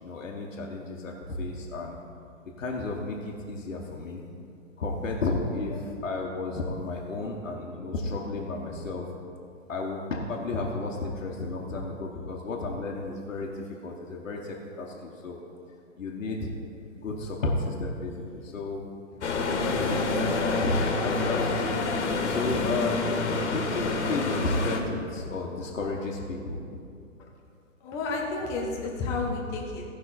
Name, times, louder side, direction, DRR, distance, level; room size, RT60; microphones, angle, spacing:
voice 1, 0.0-2.0 2.6-4.2 4.8-9.1 9.7-15.4 16.0-16.5 17.0-18.8 19.6-21.8 22.3-26.6, left 3 dB, 75° left, -1 dB, 1.4 m, -32 dB
sound 1, 19.2-24.8, left 3 dB, 60° left, 1.5 m, -27 dB
voice 2, 27.8-29.8, left 3 dB, 10° left, -1 dB, 0.4 m, -31 dB
16.0 x 5.6 x 4.3 m, 2.4 s
hypercardioid pair, 135°, 39 cm